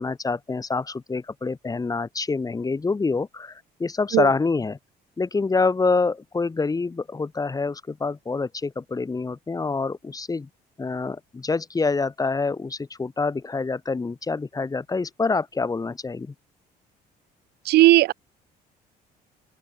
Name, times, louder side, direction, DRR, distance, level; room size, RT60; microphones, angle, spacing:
voice 1, 0.0-4.8 5.2-10.5 10.8-16.3, left 4 dB, 20° left, 3.6 m, -26 dB
voice 2, 17.7-18.1, right 17 dB, 75° right, 0.8 m, -15 dB
open air
cardioid pair, 110°, 17 cm